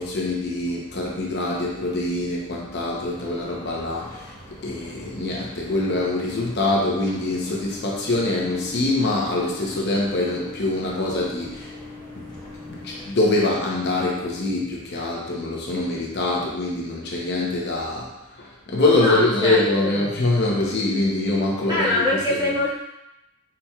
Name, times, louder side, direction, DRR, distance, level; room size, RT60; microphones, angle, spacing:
voice 1, 0.0-4.4 4.6-11.7 12.2-12.3 12.7-22.5, left 2 dB, 50° left, -3 dB, 0.7 m, -24 dB
sound 1, 3.0-13.1, left 2 dB, 20° left, 1.0 m, -41 dB
voice 2, 18.9-20.1 21.6-22.8, left 1 dB, 20° right, -10 dB, 1.6 m, -24 dB
5.1 x 4.2 x 2.3 m, 0.90 s
head